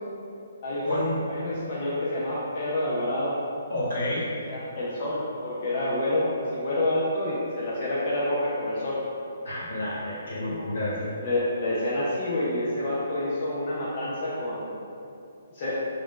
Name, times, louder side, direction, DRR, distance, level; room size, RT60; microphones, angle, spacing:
voice 1, 0.6-3.4 4.5-9.0 11.2-14.7 15.5-15.8, left 1 dB, 30° left, -8 dB, 0.3 m, -28 dB
voice 2, 3.7-4.3 9.4-11.0, left 1 dB, 65° left, -8 dB, 1.0 m, -30 dB
2.3 x 2.1 x 3.6 m, 2.6 s
hypercardioid pair, 175°, 0 cm